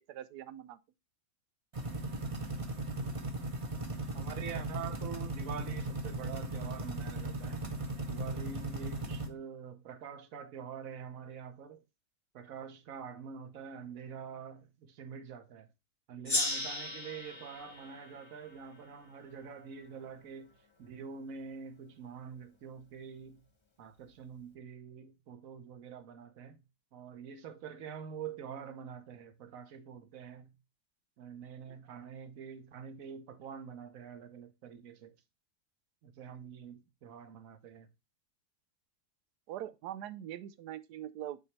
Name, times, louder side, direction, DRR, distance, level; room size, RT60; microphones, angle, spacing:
voice 1, 0.1-0.8 16.1-16.3 39.5-41.4, right 12 dB, 90° right, 1.2 m, -43 dB
sound 1, 1.7-9.3, right 2 dB, 25° right, 0.9 m, -37 dB
voice 2, 4.1-7.6 8.1-11.8 12.3-15.7 16.1-20.5 20.8-23.4 23.8-26.6 26.9-30.5 31.2-35.1 36.0-37.9, right 7 dB, 60° right, 1.2 m, -46 dB
Gong, 16.2-19.4, left 2 dB, 25° left, 0.8 m, -37 dB
8.8 x 4.1 x 3.2 m
omnidirectional pair, 1.7 m